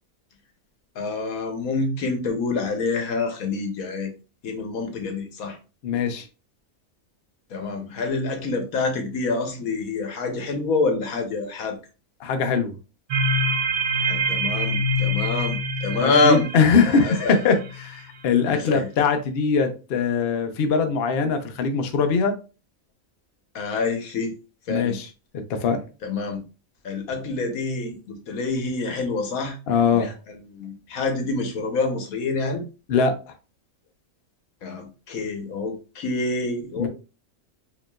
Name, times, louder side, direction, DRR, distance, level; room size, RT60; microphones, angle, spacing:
voice 1, 0.9-4.1 4.4-5.6 7.5-11.8 13.9-16.4 17.1-17.4 18.5-18.9 23.5-24.3 24.7-25.0 26.0-26.4 26.8-29.6 29.9-32.6 34.6-36.9, left 3 dB, 90° left, 4 dB, 1.4 m, -26 dB
voice 2, 5.8-6.3 12.2-12.7 16.0-22.3 24.7-25.1 25.3-25.8 29.7-30.1 32.9-33.3 36.8-36.9, left 5 dB, 55° left, 7 dB, 0.8 m, -22 dB
sound 1, 13.1-17.9, equal, 70° right, 1.0 m, -25 dB
5.0 x 3.0 x 2.3 m, 0.33 s
omnidirectional pair, 1.4 m